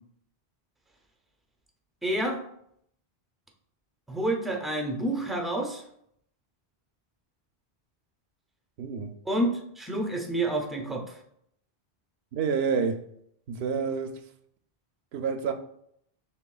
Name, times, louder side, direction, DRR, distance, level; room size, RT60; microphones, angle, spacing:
voice 1, 2.0-2.4 4.1-5.8 9.3-9.5 9.8-11.2, right 1 dB, ahead, 0.4 m, -28 dB
voice 2, 8.8-9.1 12.3-13.0 13.5-14.2 15.1-15.5, right 6 dB, 75° right, 0.8 m, -28 dB
5.9 x 3.4 x 2.3 m
omnidirectional pair, 1.0 m